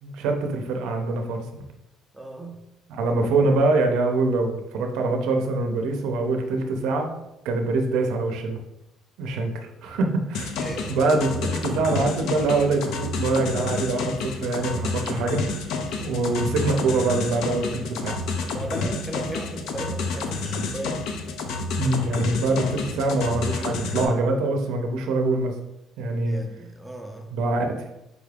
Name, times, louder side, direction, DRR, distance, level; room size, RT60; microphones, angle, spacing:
voice 1, 0.0-1.6 2.9-7.1 7.4-8.6 9.2-10.6 10.9-15.6 16.0-18.1 21.7-25.5 26.0-26.4 27.3-27.8, right 3 dB, 80° right, 4 dB, 0.6 m, -24 dB
voice 2, 2.1-2.6 3.1-3.2 9.3-9.6 10.6-11.0 15.9-16.3 18.5-21.0 26.2-27.3, right 2 dB, 5° right, 3 dB, 0.4 m, -36 dB
sound 1, 10.3-24.1, left 3 dB, 65° left, 0.5 m, -29 dB
5.0 x 2.4 x 3.3 m, 0.89 s
cardioid pair, 170°, 0 cm